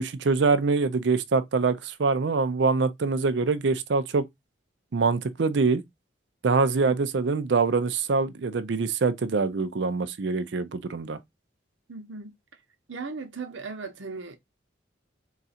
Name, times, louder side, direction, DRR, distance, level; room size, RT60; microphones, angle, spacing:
voice 1, 0.0-4.2 4.9-5.8 6.4-11.2, right 4 dB, 70° right, 0.5 m, -24 dB
voice 2, 11.9-12.3 12.9-14.4, right 4 dB, 90° right, 0.9 m, -37 dB
3.9 x 2.4 x 4.1 m
head